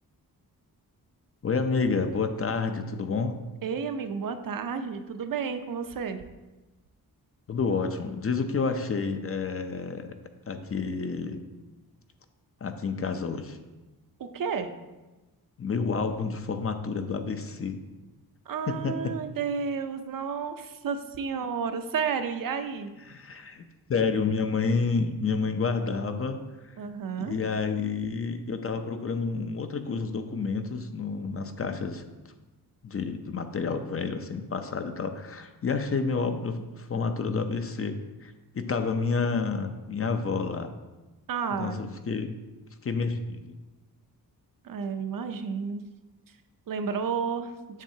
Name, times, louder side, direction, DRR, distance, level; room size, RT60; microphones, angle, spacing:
voice 1, 1.4-3.4 7.5-10.1 10.5-11.4 12.6-13.6 15.6-17.7 18.7-19.1 23.1-23.6 23.9-26.4 27.3-32.1 32.8-38.0 38.2-40.7 41.5-42.3 42.8-43.5, left 4 dB, 40° left, 8 dB, 0.5 m, -29 dB
voice 2, 3.6-6.2 14.2-14.7 18.5-22.9 26.8-27.4 41.3-41.9 44.6-45.8 46.7-47.5, right 6 dB, 60° right, 8 dB, 0.6 m, -31 dB
7.3 x 7.3 x 2.8 m, 1.1 s
wide cardioid pair, 115°, 37 cm